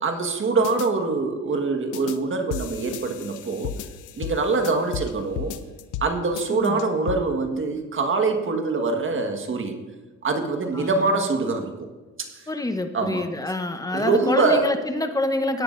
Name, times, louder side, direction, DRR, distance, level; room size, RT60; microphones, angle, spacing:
voice 1, 0.0-3.7 4.2-5.6 6.0-9.8 10.2-11.7 12.2-12.5 12.9-13.3 13.9-14.7, right 3 dB, 40° right, 5 dB, 1.6 m, -24 dB
sound 1, 0.6-0.9 1.9-2.2 2.5-5.1 5.4-6.1 6.4-7.2, left 8 dB, 90° left, 0.7 m, -33 dB
voice 2, 6.5-6.9 10.7-11.3 12.5-15.6, left 2 dB, 10° left, 8 dB, 1.0 m, -27 dB
17.5 x 9.5 x 2.6 m, 1.3 s
cardioid pair, 90°, 30 cm